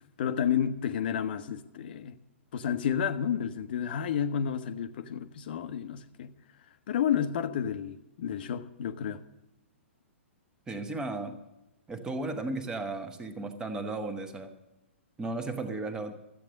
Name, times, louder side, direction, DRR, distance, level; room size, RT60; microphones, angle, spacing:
voice 1, 0.2-2.2 2.5-6.3 6.9-9.2, left 8 dB, 45° left, 0.9 m, -31 dB
voice 2, 10.7-11.4 11.9-14.5 15.2-16.1, right 2 dB, 10° right, 1.2 m, -35 dB
13.5 x 8.6 x 6.5 m
figure-of-eight pair, 115°, 7 cm